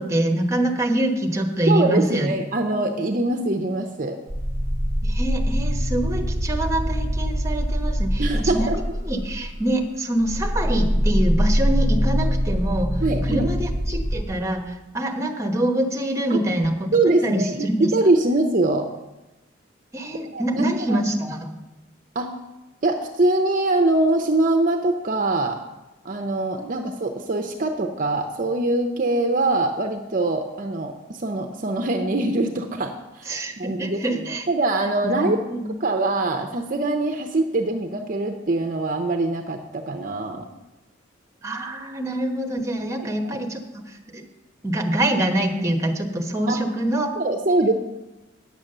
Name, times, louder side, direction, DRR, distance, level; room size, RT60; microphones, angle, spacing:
voice 1, 0.0-2.3 5.0-12.9 13.2-17.9 19.9-21.5 26.6-26.8 33.3-34.5 35.0-35.7 41.4-44.2 44.6-47.1, right 1 dB, 15° right, 3 dB, 1.1 m, -25 dB
voice 2, 1.7-4.2 8.2-8.8 13.0-13.5 16.3-16.4 16.9-18.9 20.3-21.0 22.1-22.3 22.8-25.6 26.0-34.0 34.3-35.4 35.8-40.5 42.9-43.4 46.5-46.6 47.2-47.7, right 2 dB, 45° right, 5 dB, 0.7 m, -23 dB
sound 1, 4.3-9.8 10.2-14.2, equal, 30° left, 1.1 m, -23 dB
9.7 x 7.3 x 6.6 m, 1.0 s
head